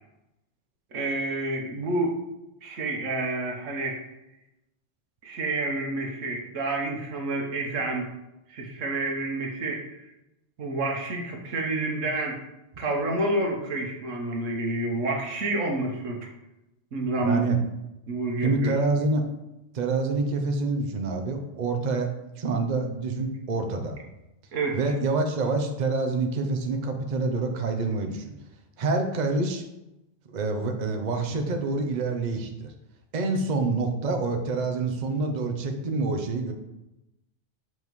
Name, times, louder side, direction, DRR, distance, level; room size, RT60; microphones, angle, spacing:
voice 1, 0.9-2.1 2.6-4.0 5.2-8.1 8.5-10.0 10.6-12.4 12.8-16.3 16.9-17.5 18.1-18.8 24.5-24.8, right 2 dB, 90° right, 1 dB, 1.5 m, -29 dB
voice 2, 17.2-17.6 18.4-19.2 19.7-22.1 22.4-24.0 24.7-28.3 28.8-29.6 30.3-32.7 33.1-36.5, right 3 dB, 40° right, 5 dB, 0.8 m, -27 dB
7.6 x 5.3 x 3.1 m, 0.94 s
omnidirectional pair, 1.3 m